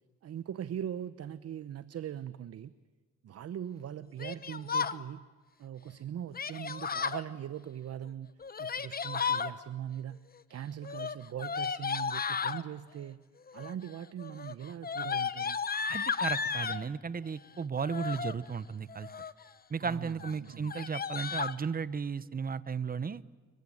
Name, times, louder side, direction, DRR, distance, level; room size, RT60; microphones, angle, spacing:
voice 1, 0.2-2.7 3.2-5.2 5.6-8.3 8.6-10.2 10.5-13.2 13.5-15.6 19.8-20.7, right 10 dB, 55° right, 15 dB, 0.9 m, -41 dB
Yell, 4.2-5.0 6.3-7.2 8.4-9.5 10.8-12.6 13.5-13.9 14.2-16.8 17.8-18.3 18.9-19.4 19.8-19.9 20.2-20.3 20.6-21.5, left 6 dB, 30° left, 1.0 m, -34 dB
voice 2, 15.9-19.1 19.7-23.2, right 5 dB, 30° right, 17 dB, 0.9 m, -35 dB
26.5 x 23.5 x 8.8 m, 1.4 s
cardioid pair, 90°, 30 cm